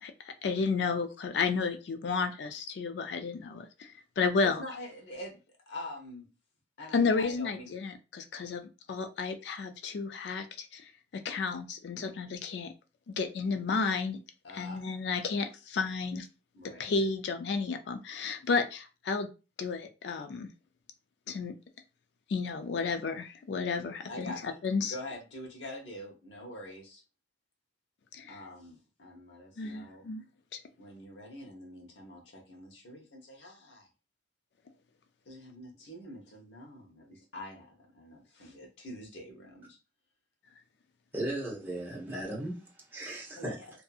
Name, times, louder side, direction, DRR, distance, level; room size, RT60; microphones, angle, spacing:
voice 1, 0.0-3.7 4.2-4.6 6.9-8.6 8.9-10.8 11.2-12.7 13.2-14.2 14.5-16.3 16.8-19.3 19.6-20.5 21.3-21.5 22.3-24.9 28.1-28.4 29.6-30.2 30.5-30.6, left 4 dB, 70° left, 0.4 m, -32 dB
voice 2, 4.4-5.4 5.7-6.3 6.8-7.7 14.4-14.8 16.5-16.9 23.7-23.8 24.1-24.6 24.9-27.0 28.3-30.1 30.8-33.9 35.3-39.8 43.4-43.7, left 1 dB, 90° left, 1.0 m, -45 dB
voice 3, 41.1-42.6 42.9-43.6, right 1 dB, 10° right, 0.8 m, -36 dB
2.6 x 2.6 x 2.3 m
head